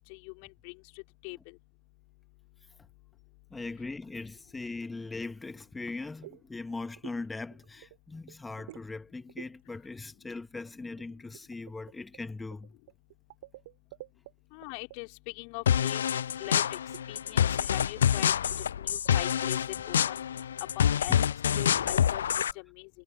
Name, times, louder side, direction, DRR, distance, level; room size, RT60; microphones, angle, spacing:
voice 1, 3.5-12.8 21.1-21.9, left 3 dB, 10° left, 2.0 m, -40 dB
sound 1, 6.0-6.4 6.7-7.2 7.5-8.0 8.3-8.9 9.3-9.5 11.0-14.3 14.6-15.0 16.5-16.6 16.9-17.1 17.6-17.7 18.0-18.1 18.3-18.6 19.0-19.5, right 17 dB, 55° right, 2.9 m, -49 dB
voice 2, 14.5-15.1 15.3-16.0 16.4-16.8 17.1-18.3 18.8-19.6 19.8-20.0 20.8-21.3 21.5-22.2 22.6-22.9, left 40 dB or more, 45° left, 3.1 m, -40 dB
sound 2, 15.7-22.5, left 9 dB, 65° left, 0.6 m, -27 dB
figure-of-eight pair, 90°, 0 cm